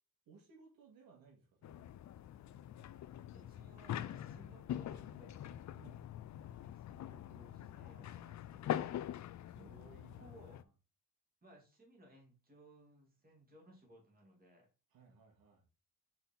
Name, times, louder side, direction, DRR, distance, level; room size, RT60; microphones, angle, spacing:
voice 1, 0.3-1.9 5.7-6.1 9.5-10.7 14.9-15.7, right 5 dB, 90° right, 2.0 m, -62 dB
sound 1, 1.6-10.6, left 11 dB, 55° left, 0.5 m, -44 dB
voice 2, 3.3-5.5 6.4-9.1 10.2-10.6 11.4-14.7, right 1 dB, 25° right, 2.7 m, -62 dB
5.4 x 4.3 x 4.1 m
cardioid pair, 100°, 34 cm